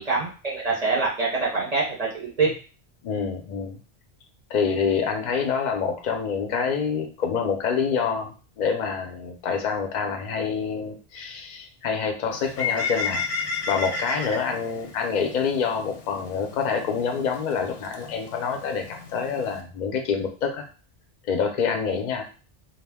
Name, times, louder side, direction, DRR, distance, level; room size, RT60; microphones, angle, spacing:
voice 1, 0.0-2.5, right 4 dB, 45° right, -3 dB, 0.5 m, -25 dB
voice 2, 3.0-3.8 4.5-13.2 13.7-20.6 21.3-22.2, left 6 dB, 55° left, 4 dB, 0.5 m, -26 dB
Bird, 12.3-19.6, left 4 dB, 90° left, 0.9 m, -33 dB
2.3 x 2.1 x 3.4 m, 0.37 s
omnidirectional pair, 1.2 m